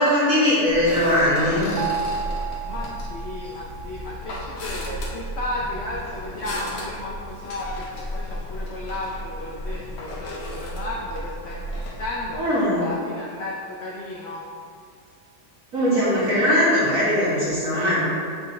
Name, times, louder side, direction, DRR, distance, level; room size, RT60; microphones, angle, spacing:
voice 1, 0.0-1.7 12.4-12.8 15.7-18.0, equal, 50° right, -9 dB, 2.1 m, -20 dB
sound 1, 0.7-12.4, equal, 55° left, 1.3 m, -34 dB
sound 2, 1.8-6.5, right 7 dB, 70° right, 0.9 m, -35 dB
voice 2, 2.6-14.4, left 1 dB, 80° left, -4 dB, 0.5 m, -34 dB
6.6 x 4.6 x 3.1 m, 2.4 s
omnidirectional pair, 1.9 m